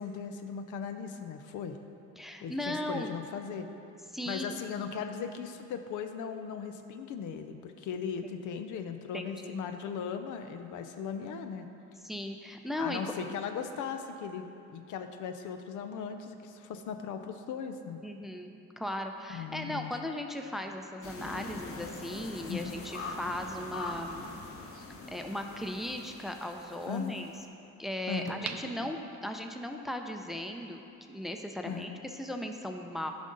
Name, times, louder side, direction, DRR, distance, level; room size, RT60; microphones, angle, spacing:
voice 1, 0.0-1.8 2.4-3.7 4.3-11.7 12.8-14.5 14.7-18.0 19.3-19.9 22.5-22.8 26.9-27.1 28.1-28.3 31.7-31.9, left 6 dB, 80° left, 7 dB, 0.6 m, -38 dB
voice 2, 2.2-3.2 4.1-4.6 8.2-8.6 9.1-9.6 12.0-13.1 18.0-24.3 25.1-27.3 27.8-30.8 31.1-33.1, left 1 dB, ahead, 4 dB, 0.5 m, -37 dB
sound 1, 21.0-27.4, left 3 dB, 45° left, 1.0 m, -43 dB
sound 2, 28.3-29.6 30.1-30.2, right 8 dB, 85° right, 0.5 m, -42 dB
10.5 x 5.2 x 3.9 m, 2.8 s
cardioid pair, 90°, 30 cm